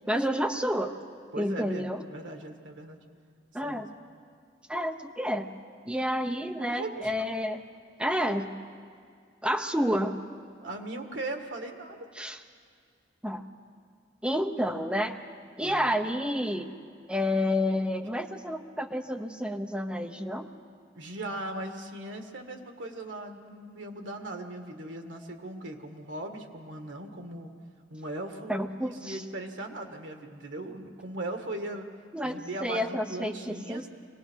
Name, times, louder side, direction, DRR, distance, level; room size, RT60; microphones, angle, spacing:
voice 1, 0.1-1.0 1.4-2.0 3.5-3.9 4.7-5.5 5.9-7.6 8.0-8.5 9.4-10.2 12.2-12.4 13.2-13.4 14.2-15.2 15.6-16.7 17.1-20.5 28.5-29.2 32.1-33.8, equal, 5° right, 5 dB, 0.8 m, -29 dB
voice 2, 1.3-3.0 3.6-3.9 6.6-7.1 10.6-12.1 15.6-15.9 20.9-27.5 27.9-31.9 32.2-33.9, right 2 dB, 80° right, 4 dB, 1.8 m, -39 dB
24.0 x 18.0 x 6.3 m, 2.2 s
head